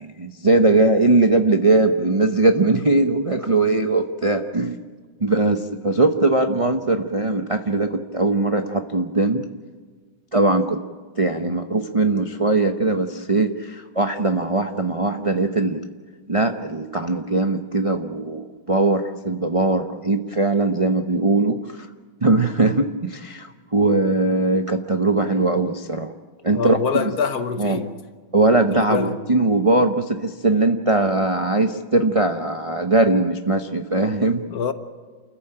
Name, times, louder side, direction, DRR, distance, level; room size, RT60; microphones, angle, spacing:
voice 1, 0.0-4.8 5.2-9.4 10.3-10.8 11.2-15.8 16.3-21.9 22.2-26.1 26.4-27.0 27.6-27.8 28.3-34.4, right 2 dB, 45° right, 0.4 m, -20 dB
voice 2, 26.5-27.9 28.7-29.2 34.5-34.7, left 6 dB, 55° left, 1.4 m, -25 dB
28.5 x 15.0 x 8.8 m
omnidirectional pair, 2.3 m